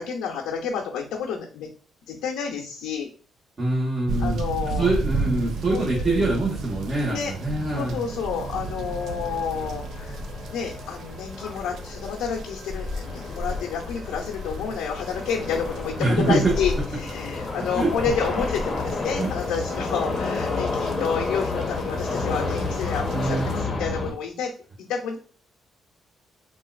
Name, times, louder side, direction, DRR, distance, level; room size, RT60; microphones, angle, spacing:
voice 1, 0.0-1.7 2.1-3.1 4.2-4.9 5.7-6.2 7.1-7.3 7.7-10.2 10.5-24.5 24.8-25.2, left 6 dB, 90° left, -1 dB, 0.6 m, -30 dB
voice 2, 3.6-4.4 4.7-8.0 16.0-16.5 17.7-17.9 19.2-19.3 23.1-23.5, right 2 dB, 35° right, -7 dB, 1.3 m, -24 dB
sound 1, 4.1-23.6, right 4 dB, 70° right, 0.4 m, -35 dB
sound 2, 5.1-24.1, left 3 dB, 25° left, 0.8 m, -31 dB
3.8 x 2.4 x 2.4 m, 0.40 s
cardioid pair, 90°, 0 cm